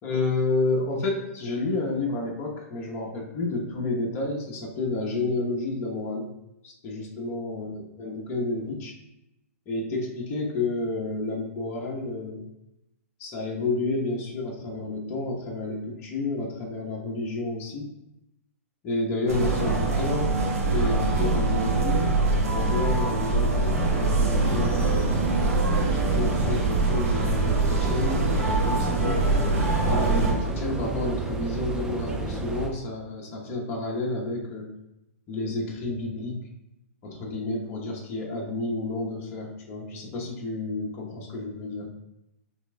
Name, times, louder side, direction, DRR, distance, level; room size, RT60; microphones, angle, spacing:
voice 1, 0.0-6.3 6.6-8.9 9.7-12.5 13.2-17.9 18.8-20.4 20.7-22.1 22.5-25.2 25.9-29.5 29.9-34.7 35.3-36.4 37.0-41.9, left 2 dB, 30° left, -2 dB, 1.0 m, -30 dB
sound 1, 19.3-30.3, right 3 dB, 70° right, 1.2 m, -24 dB
sound 2, 24.3-32.7, right 3 dB, 10° right, 0.4 m, -32 dB
5.7 x 3.3 x 2.2 m, 0.90 s
hypercardioid pair, 130°, 8 cm